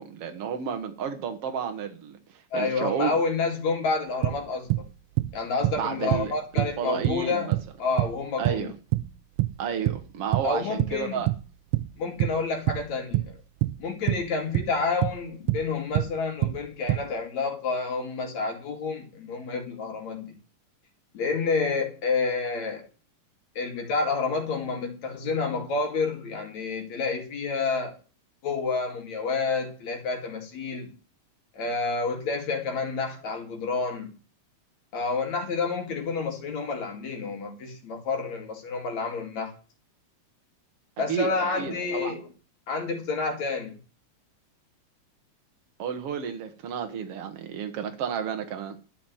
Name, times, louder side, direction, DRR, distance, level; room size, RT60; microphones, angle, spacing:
voice 1, 0.0-3.1 5.8-7.6 8.4-8.7 9.6-11.3 41.0-41.3 41.6-42.1 45.8-48.8, right 7 dB, 55° right, 2.5 m, -32 dB
voice 2, 2.5-4.9 5.3-8.7 10.4-11.3 12.0-13.4 13.8-20.4 21.1-22.9 23.6-28.0 28.4-30.9 31.5-34.1 34.9-39.5 41.0-42.3 42.7-43.8, left 4 dB, 70° left, 3.7 m, -29 dB
sound 1, 4.2-10.6 10.8-17.1, right 18 dB, 85° right, 2.1 m, -26 dB
12.0 x 6.2 x 9.4 m
omnidirectional pair, 3.3 m